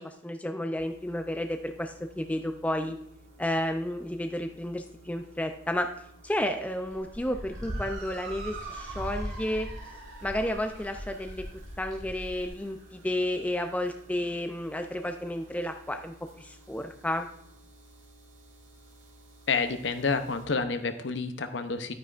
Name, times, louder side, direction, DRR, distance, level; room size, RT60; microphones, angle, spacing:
voice 1, 0.0-3.0 3.4-5.9 6.2-9.7 10.2-11.5 11.8-17.3, left 1 dB, 5° left, 5 dB, 0.4 m, -32 dB
sound 1, 0.8-20.5, right 1 dB, 90° right, 2.5 m, -55 dB
sound 2, 6.9-12.5, equal, 20° right, 2.8 m, -40 dB
Motor vehicle (road) / Siren, 7.3-15.9, right 3 dB, 50° right, 2.2 m, -47 dB
voice 2, 19.5-21.9, left 4 dB, 65° left, 9 dB, 0.7 m, -29 dB
10.5 x 9.2 x 2.5 m, 0.74 s
head